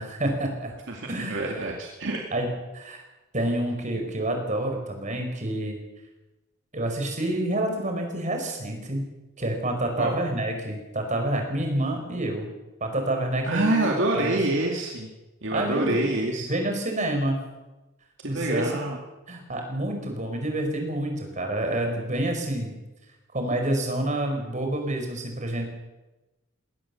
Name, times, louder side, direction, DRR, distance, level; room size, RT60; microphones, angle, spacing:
voice 1, 0.0-0.7 1.1-1.7 2.3-3.0 3.3-5.8 6.7-9.1 9.4-12.5 12.8-14.4 15.5-16.0 16.4-17.4 18.3-18.7 19.3-22.7 23.3-25.7, right 1 dB, 35° right, 4 dB, 5.1 m, -28 dB
voice 2, 0.9-2.3 10.0-10.2 13.4-15.1 15.4-16.5 18.2-19.0, right 2 dB, 60° right, 0 dB, 2.4 m, -26 dB
21.0 x 18.5 x 7.2 m, 1.1 s
head